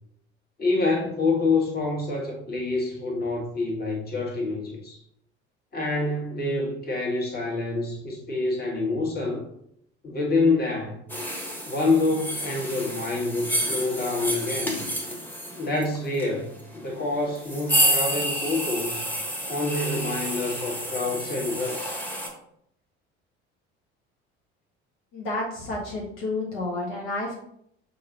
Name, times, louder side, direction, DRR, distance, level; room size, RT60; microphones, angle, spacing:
voice 1, 0.6-5.0 5.7-9.4 10.0-11.0 11.6-14.8 15.6-19.0 19.5-22.0, left 3 dB, 30° left, -1 dB, 1.5 m, -27 dB
sound 1, 11.1-22.3, equal, 5° left, 1.2 m, -29 dB
voice 2, 25.1-27.3, left 2 dB, 60° left, -2 dB, 1.1 m, -30 dB
6.2 x 2.7 x 2.9 m, 0.72 s
figure-of-eight pair, 60°, 34 cm